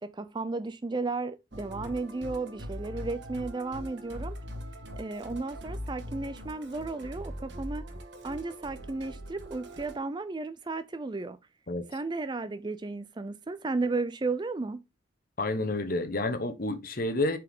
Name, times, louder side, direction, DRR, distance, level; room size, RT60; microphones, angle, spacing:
voice 1, 0.0-4.4 5.0-7.9 8.2-11.4 11.9-14.8, right 3 dB, 20° right, 0.4 m, -34 dB
Musical instrument, 1.5-10.0, equal, 60° right, 1.4 m, -41 dB
voice 2, 15.4-17.4, left 2 dB, 45° left, 1.0 m, -29 dB
7.3 x 4.6 x 3.5 m
head